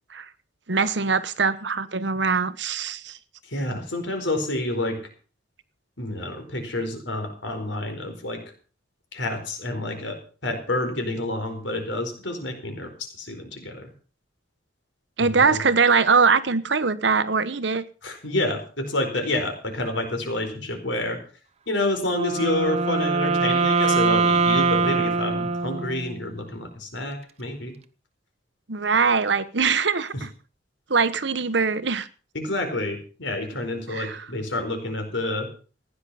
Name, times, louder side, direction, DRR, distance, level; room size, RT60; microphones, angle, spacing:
voice 1, 0.7-3.2 15.2-17.8 28.7-30.3 30.9-32.1 33.9-34.3, right 5 dB, 65° right, 1.0 m, -22 dB
voice 2, 3.4-5.0 6.0-8.4 9.1-10.2 10.4-13.9 15.2-15.6 18.0-21.2 21.7-27.7 30.1-30.2 32.3-35.5, left 1 dB, 75° left, 4.6 m, -28 dB
Wind instrument woodwind instrument, 22.1-26.3, right 4 dB, 35° right, 0.8 m, -23 dB
15.5 x 10.0 x 5.7 m
head